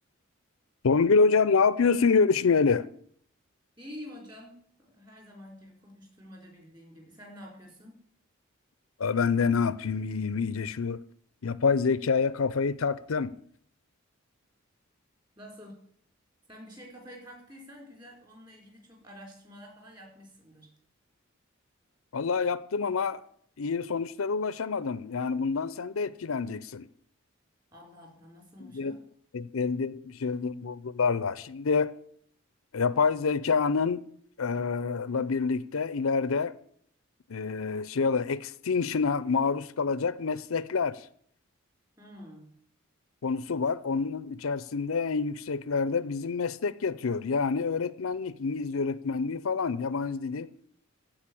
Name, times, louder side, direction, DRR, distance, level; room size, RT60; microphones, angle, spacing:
voice 1, 0.8-2.9 9.0-11.0 11.4-13.3 22.1-23.2 23.6-26.9 28.7-29.0 29.3-31.9 32.7-34.0 34.4-36.5 37.3-41.1 43.2-50.5, left 5 dB, 85° left, 0.6 m, -27 dB
voice 2, 3.8-8.0 15.4-15.9 16.5-20.7 27.7-29.0 42.0-42.5, equal, 20° right, 4.2 m, -48 dB
14.5 x 5.2 x 8.5 m
head